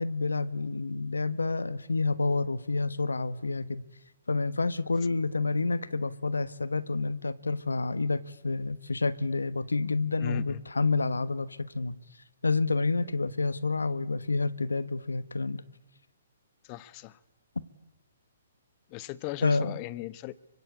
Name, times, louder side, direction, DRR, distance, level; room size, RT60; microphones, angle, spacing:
voice 1, 0.0-3.8 4.3-11.9 12.4-15.6 19.4-19.7, left 3 dB, 85° left, 17 dB, 1.2 m, -29 dB
voice 2, 10.2-10.6 16.6-17.2 18.9-20.3, left 16 dB, 35° left, 18 dB, 1.1 m, -38 dB
25.0 x 24.5 x 8.4 m, 0.97 s
figure-of-eight pair, 130°, 0 cm